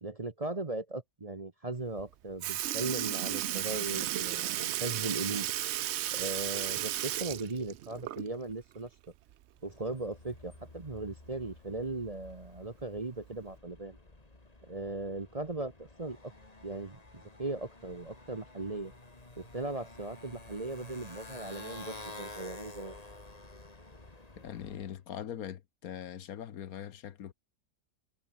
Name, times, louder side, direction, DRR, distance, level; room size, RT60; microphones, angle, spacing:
voice 1, 0.0-5.5 6.1-8.9 9.6-14.0 14.7-16.3 16.6-18.9 19.4-23.0, right 2 dB, 25° right, 1.0 m, -38 dB
Sink (filling or washing) / Liquid, 2.0-2.1 2.4-8.5 8.9-9.0 10.5-10.6 11.5-11.6 12.4-12.7 13.5-13.6, right 13 dB, 65° right, 0.7 m, -34 dB
Motorcycle, 9.6-25.0, left 2 dB, 25° left, 2.6 m, -51 dB
voice 2, 24.4-27.3, left 9 dB, 70° left, 1.4 m, -41 dB
omnidirectional pair, 1.6 m